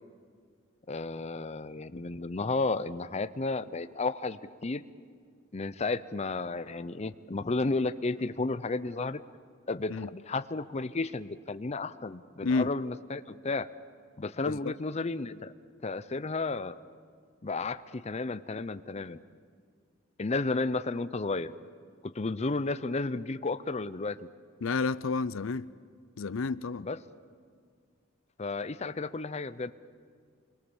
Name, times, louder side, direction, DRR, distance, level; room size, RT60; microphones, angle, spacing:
voice 1, 0.9-4.8 5.5-9.2 9.7-13.7 14.2-15.5 15.8-16.7 17.4-19.2 20.2-21.5 22.0-24.3 26.8-27.0 28.4-29.7, left 3 dB, 35° left, 0.6 m, -33 dB
voice 2, 12.4-12.8 14.5-14.7 24.6-25.7 26.2-26.9, left 4 dB, 85° left, 0.5 m, -30 dB
26.5 x 22.5 x 7.1 m
head